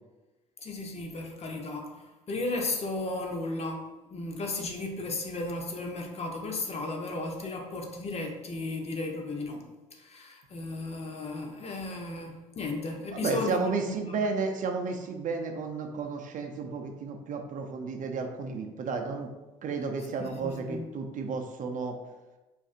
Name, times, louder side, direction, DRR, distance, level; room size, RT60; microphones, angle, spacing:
voice 1, 0.6-2.0 2.3-9.7 9.9-14.2 20.2-20.9, left 2 dB, 35° left, 2 dB, 0.8 m, -35 dB
voice 2, 13.2-19.3 19.6-22.0, right 4 dB, 45° right, 4 dB, 0.6 m, -32 dB
4.9 x 2.6 x 2.5 m, 1.1 s
hypercardioid pair, 65°, 19 cm